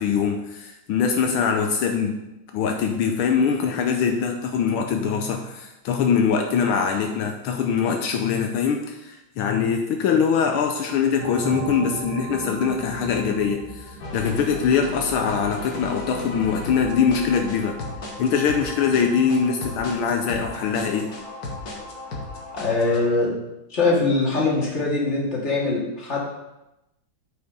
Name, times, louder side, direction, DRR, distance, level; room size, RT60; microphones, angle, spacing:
voice 1, 0.0-2.2 2.5-17.8 18.2-21.1, left 6 dB, 80° left, 4 dB, 1.6 m, -23 dB
sound 1, 11.2-15.6, right 5 dB, 55° right, 1.3 m, -35 dB
sound 2, 14.0-23.0, left 2 dB, 50° left, 1.8 m, -35 dB
voice 2, 22.5-23.4 23.7-26.2, left 3 dB, 35° left, -4 dB, 2.2 m, -22 dB
8.0 x 5.5 x 5.3 m, 0.93 s
omnidirectional pair, 2.3 m